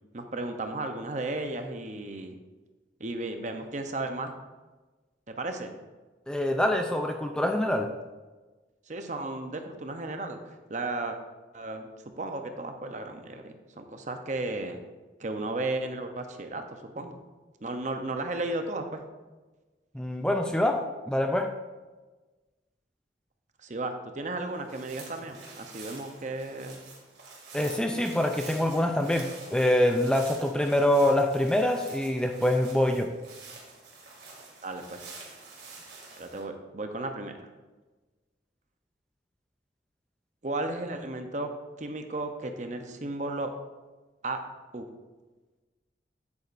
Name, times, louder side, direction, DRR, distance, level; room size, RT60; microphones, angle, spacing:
voice 1, 0.1-2.4 3.0-4.3 5.3-5.7 8.9-10.4 10.7-11.2 11.5-11.9 12.2-14.8 15.2-17.2 17.6-19.0 23.6-26.8 34.6-35.0 36.2-37.3 40.4-41.5 41.8-43.5 44.2-44.4 44.7-44.9, right 2 dB, 40° right, 6 dB, 0.7 m, -34 dB
voice 2, 6.3-7.9 19.9-20.8 21.1-21.5 27.5-33.1, left 1 dB, 5° left, 3 dB, 0.4 m, -25 dB
sound 1, 24.5-36.4, right 3 dB, 60° right, 2.3 m, -47 dB
9.6 x 8.5 x 2.6 m, 1.2 s
head